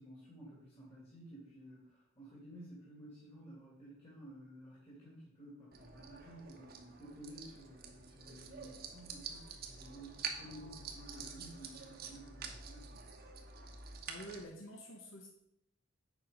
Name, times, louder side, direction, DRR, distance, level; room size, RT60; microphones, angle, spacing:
voice 1, 0.0-13.1, right 1 dB, 30° left, -7 dB, 2.7 m, -53 dB
sound 1, 5.7-14.4, right 6 dB, 50° right, 1.1 m, -48 dB
voice 2, 14.1-15.3, equal, 75° left, 1 dB, 1.3 m, -48 dB
8.2 x 5.5 x 5.1 m, 0.76 s
head